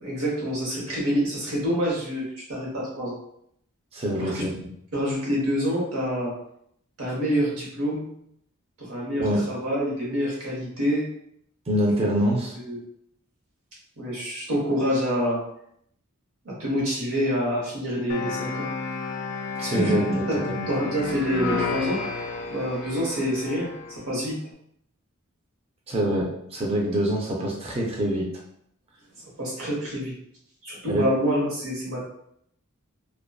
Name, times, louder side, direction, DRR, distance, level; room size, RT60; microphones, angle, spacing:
voice 1, 0.0-3.2 4.1-4.4 4.9-6.3 7.0-8.2 8.8-11.1 12.5-12.8 14.0-15.4 16.4-18.7 19.6-22.0 22.5-24.4 29.4-30.1 30.6-32.1, equal, 80° right, -4 dB, 1.0 m, -27 dB
voice 2, 3.9-4.7 9.2-9.4 11.7-12.6 19.6-20.7 25.9-28.2 30.9-31.1, equal, 25° right, -2 dB, 0.4 m, -25 dB
sound 1, 18.1-24.0, left 4 dB, 60° left, 0.3 m, -31 dB
2.5 x 2.2 x 2.3 m, 0.71 s
head